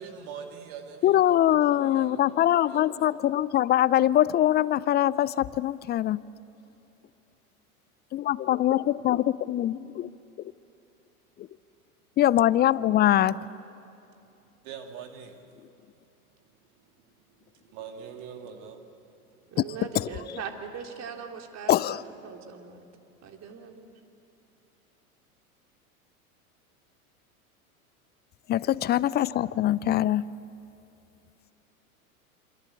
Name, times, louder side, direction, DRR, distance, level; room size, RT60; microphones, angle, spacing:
voice 1, 0.0-3.1 14.6-15.4 17.6-18.9, right 7 dB, 55° right, 5 dB, 2.6 m, -43 dB
voice 2, 1.0-6.2 8.1-10.1 11.4-11.5 12.2-13.4 19.9-20.2 21.7-22.0 28.5-30.3, left 12 dB, 25° left, 19 dB, 0.5 m, -23 dB
voice 3, 19.5-22.8 23.2-23.9, right 6 dB, 35° right, 4 dB, 3.4 m, -40 dB
27.5 x 25.0 x 8.5 m, 2.7 s
hypercardioid pair, 90°, 44 cm